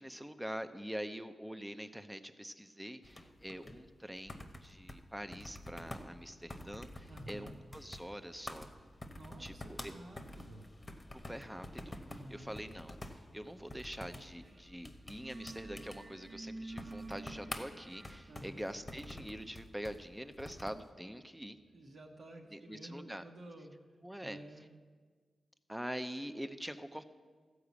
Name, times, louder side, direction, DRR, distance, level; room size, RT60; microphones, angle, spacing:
voice 1, 0.0-8.7 9.4-9.9 11.1-12.0 12.3-21.6 22.5-23.3 24.0-24.4 25.7-27.0, equal, 5° right, 9 dB, 0.7 m, -44 dB
sound 1, 3.0-20.9, left 1 dB, 25° left, 1.0 m, -49 dB
voice 2, 7.1-7.5 9.1-10.7 12.1-12.5 18.3-18.6 21.3-21.4 21.7-23.7 24.2-24.7, right 1 dB, 60° right, 0 dB, 1.5 m, -51 dB
sound 2, 14.4-14.7 14.9-21.6, right 2 dB, 45° right, 1.0 m, -52 dB
13.5 x 4.9 x 8.3 m, 1.5 s
cardioid pair, 70°, 0 cm